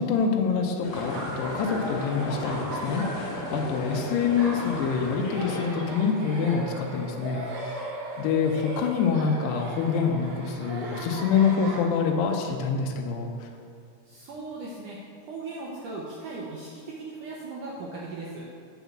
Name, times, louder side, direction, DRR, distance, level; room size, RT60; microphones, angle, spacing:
voice 1, 0.0-13.5, left 6 dB, 80° left, 1 dB, 2.8 m, -26 dB
sound 1, 0.8-6.0, left 2 dB, 60° left, 2.4 m, -35 dB
Laughter, 0.9-11.8, right 2 dB, 55° right, 2.1 m, -38 dB
voice 2, 14.1-18.4, right 3 dB, 75° right, -4 dB, 1.9 m, -38 dB
8.1 x 5.4 x 7.2 m, 2.5 s
omnidirectional pair, 4.8 m